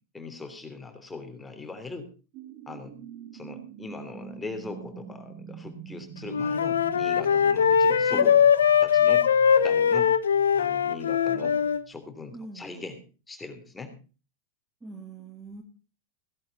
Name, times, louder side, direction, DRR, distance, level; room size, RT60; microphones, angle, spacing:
voice 1, 0.1-2.1 2.7-3.0 3.3-8.4 8.8-9.3 9.6-10.1 10.5-14.0, left 3 dB, 10° left, 7 dB, 3.1 m, -40 dB
sound 1, 2.3-12.7, right 7 dB, 45° right, 2.2 m, -46 dB
Wind instrument woodwind instrument, 6.3-11.8, left 7 dB, 75° left, 0.8 m, -21 dB
voice 2, 12.3-12.7 14.8-15.6, right 3 dB, 15° right, 4 dB, 2.3 m, -41 dB
16.5 x 11.0 x 4.1 m, 0.34 s
figure-of-eight pair, 90°, 0 cm